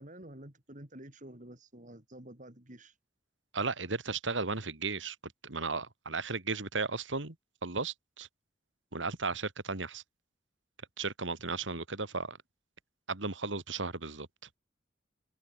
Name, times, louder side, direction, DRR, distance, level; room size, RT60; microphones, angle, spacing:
voice 1, 0.0-3.0, right 1 dB, 45° right, 3.8 m, -49 dB
voice 2, 3.5-7.4 7.6-8.3 8.9-10.0 11.0-12.4 13.1-14.3, right 4 dB, 90° right, 2.5 m, -35 dB
open air
head